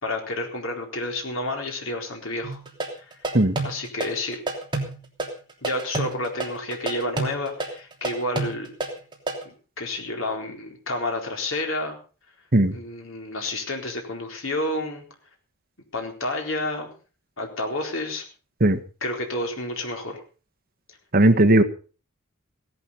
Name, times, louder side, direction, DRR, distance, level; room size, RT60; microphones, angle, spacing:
voice 1, 0.0-2.6 3.6-4.6 5.6-8.7 9.5-12.0 12.7-15.0 15.9-16.9 17.4-18.2 19.0-20.2, left 2 dB, 70° left, 2 dB, 4.1 m, -30 dB
sound 1, 2.4-9.4, right 2 dB, 20° right, 3.1 m, -29 dB
voice 2, 21.1-21.6, right 1 dB, 45° right, 8 dB, 1.4 m, -17 dB
17.0 x 11.0 x 5.5 m, 0.38 s
head